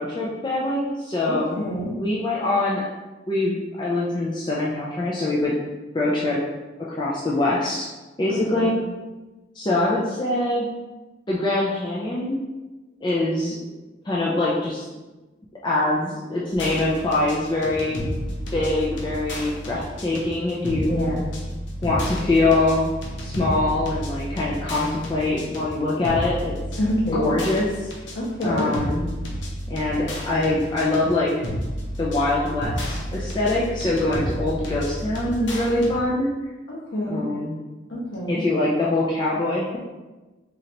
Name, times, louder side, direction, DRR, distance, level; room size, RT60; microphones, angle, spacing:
voice 1, 0.0-1.7 2.0-2.9 3.3-5.5 5.9-6.4 6.9-7.9 8.2-8.8 9.6-10.7 11.3-12.4 13.0-13.6 14.0-14.9 15.6-18.1 18.5-21.0 21.8-26.5 27.1-27.7 28.4-29.0 29.7-31.4 32.0-36.3 37.0-37.6 38.3-39.8, left 2 dB, 25° left, -6 dB, 0.4 m, -23 dB
voice 2, 1.2-2.0 8.3-8.7 20.9-21.2 26.8-27.4 28.1-28.7 36.7-37.3 37.9-38.4, equal, 60° left, -4 dB, 1.1 m, -27 dB
sound 1, 16.5-36.0, equal, 80° left, 0.8 m, -32 dB
3.8 x 3.2 x 2.8 m, 1.2 s
head